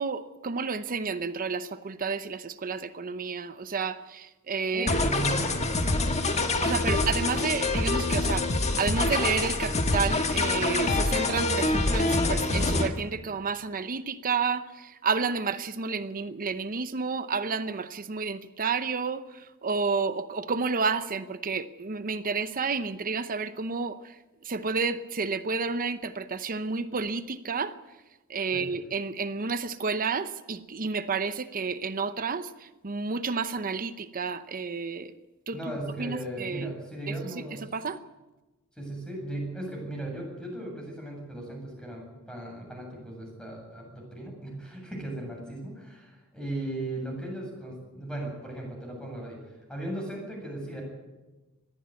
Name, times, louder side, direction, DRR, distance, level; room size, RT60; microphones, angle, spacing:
voice 1, 0.0-4.9 6.6-8.5 8.8-14.6 15.0-19.2 19.6-24.0 24.5-27.7 28.3-32.5 32.8-35.1 35.5-35.6 36.0-36.7 37.7-38.0, right 5 dB, 40° right, 12 dB, 0.7 m, -30 dB
voice 2, 4.7-7.0 28.5-28.7 35.5-37.7 38.8-49.4 49.7-50.8, right 1 dB, 5° left, 0 dB, 7.8 m, -37 dB
sound 1, 4.9-12.9, left 2 dB, 30° left, 1.7 m, -26 dB
21.0 x 14.5 x 9.6 m, 1.1 s
head